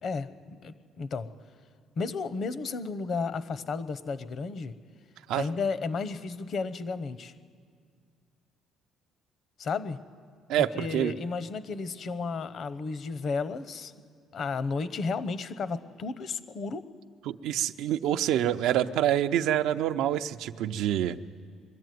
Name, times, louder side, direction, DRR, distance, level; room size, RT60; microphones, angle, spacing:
voice 1, 0.0-1.3 2.0-4.7 5.3-7.3 9.6-10.0 10.6-13.9 14.3-16.9, left 4 dB, 50° left, 13 dB, 1.0 m, -33 dB
voice 2, 10.5-11.1 17.3-21.2, right 11 dB, 85° right, 9 dB, 0.6 m, -26 dB
22.0 x 13.5 x 9.4 m, 2.1 s
cardioid pair, 115°, 0 cm